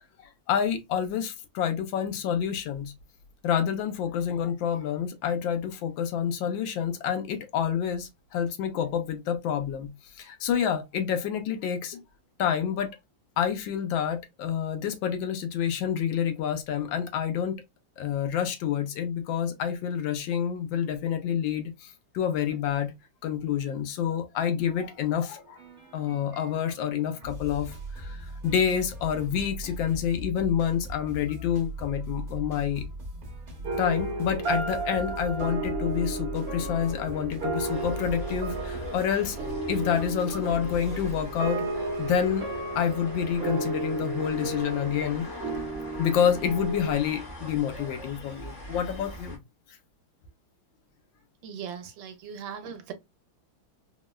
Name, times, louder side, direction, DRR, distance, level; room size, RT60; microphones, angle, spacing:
voice 1, 0.2-2.9 3.4-12.0 12.4-13.0 13.4-17.6 18.0-22.9 23.2-25.6 25.9-32.8 33.8-39.4 39.7-42.5 42.7-45.3 46.0-49.4, left 8 dB, 80° left, 1.3 m, -28 dB
sound 1, 24.6-43.8, right 1 dB, 35° right, 0.7 m, -41 dB
sound 2, 33.6-46.9, right 2 dB, 60° right, 1.3 m, -33 dB
sound 3, 37.6-49.4, equal, 30° left, 0.8 m, -43 dB
voice 2, 51.4-52.9, right 7 dB, 80° right, 1.4 m, -39 dB
3.5 x 2.1 x 2.2 m
omnidirectional pair, 2.1 m